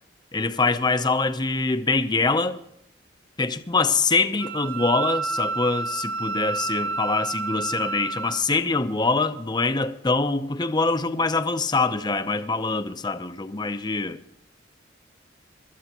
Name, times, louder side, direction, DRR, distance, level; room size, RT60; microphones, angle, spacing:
voice 1, 0.3-2.6 3.4-14.2, left 3 dB, 20° left, 0.7 m, -24 dB
Wind instrument woodwind instrument, 4.4-8.4, right 4 dB, 55° right, 1.5 m, -29 dB
24.5 x 13.0 x 3.0 m
head